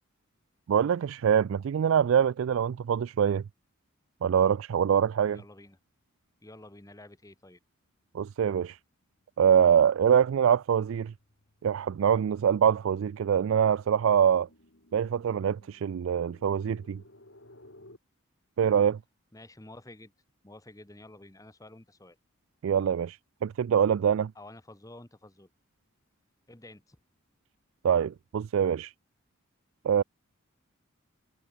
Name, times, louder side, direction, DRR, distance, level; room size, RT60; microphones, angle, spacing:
voice 1, 0.7-3.4 4.2-5.4 8.1-8.8 9.4-11.1 11.6-14.5 14.9-17.0 18.6-19.0 22.6-24.3 27.8-28.9 29.8-30.0, right 8 dB, 75° right, 0.3 m, -24 dB
voice 2, 5.3-5.8 6.4-7.6 19.3-20.1 20.4-22.2 24.3-25.5 26.5-27.0, left 1 dB, 15° left, 1.1 m, -50 dB
sound 1, 9.0-18.0, left 1 dB, 60° left, 4.3 m, -59 dB
head